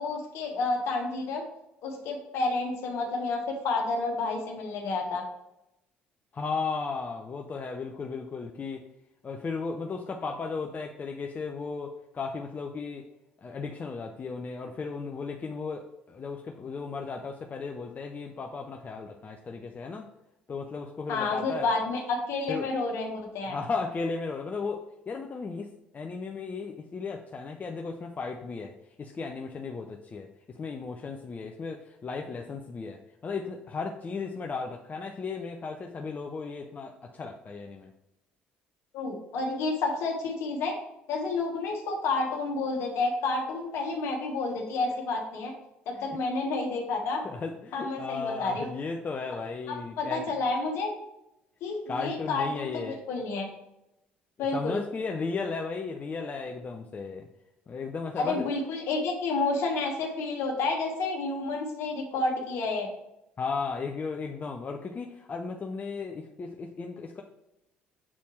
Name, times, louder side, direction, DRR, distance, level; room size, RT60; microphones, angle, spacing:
voice 1, 0.0-1.4 1.8-5.2 21.1-23.5 38.9-40.7 41.1-45.5 45.8-47.2 47.7-48.7 49.7-50.9 51.6-53.5 54.4-54.8 58.2-62.9, left 3 dB, 60° left, 1 dB, 1.4 m, -30 dB
voice 2, 6.3-8.8 9.2-13.0 13.4-20.1 20.5-21.7 22.5-22.7 23.5-25.7 25.9-28.7 29.0-37.9 47.2-50.3 51.9-53.0 54.5-57.3 57.7-58.5 63.4-67.2, left 4 dB, 30° left, 3 dB, 0.6 m, -35 dB
7.2 x 4.2 x 3.2 m, 0.89 s
figure-of-eight pair, 50°, 5 cm